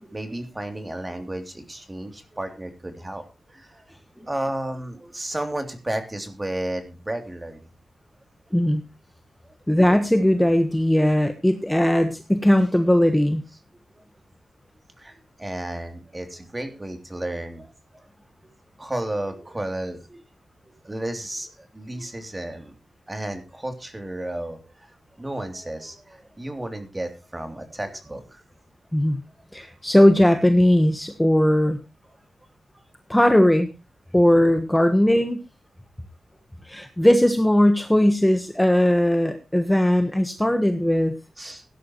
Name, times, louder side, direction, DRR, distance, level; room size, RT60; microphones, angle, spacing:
voice 1, 0.0-3.8 4.2-7.6 9.4-9.5 13.9-14.0 15.0-17.7 18.8-20.2 20.6-22.7 23.1-24.9 25.2-28.4 41.4-41.6, right 1 dB, 20° right, 5 dB, 3.0 m, -33 dB
voice 2, 8.5-8.8 9.7-13.4 28.9-29.2 29.5-31.8 33.1-33.7 34.1-35.4 36.6-41.2, left 1 dB, 5° left, 7 dB, 1.2 m, -19 dB
17.0 x 11.5 x 3.1 m, 0.28 s
wide cardioid pair, 95°, 0 cm